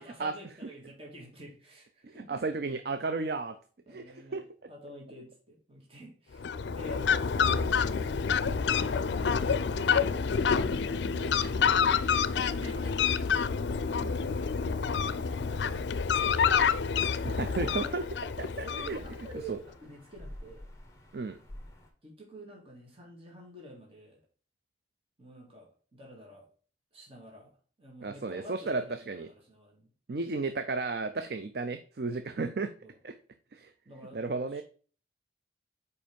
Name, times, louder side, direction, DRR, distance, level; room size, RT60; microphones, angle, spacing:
voice 1, 0.0-2.6 3.9-7.1 7.4-8.8 9.3-11.4 11.7-13.5 15.0-16.8 17.8-17.9 18.6-20.7 22.0-24.2 25.2-26.5 26.9-27.5 27.8-29.9 32.8-33.0 33.9-34.6, right 1 dB, 30° right, -2 dB, 1.8 m, -49 dB
voice 2, 2.0-3.6 3.9-4.4 14.0-14.2 17.2-18.0 18.4-19.0 19.5-19.6 21.1-21.4 28.0-29.3 30.1-32.7 33.0-33.1 33.5-33.7 34.1-34.6, right 3 dB, 60° right, 9 dB, 0.5 m, -33 dB
Fowl, 6.3-19.4, left 6 dB, 75° left, 0.4 m, -28 dB
sound 1, 11.0-21.9, left 1 dB, 15° left, 1.1 m, -53 dB
5.2 x 4.7 x 5.1 m, 0.41 s
head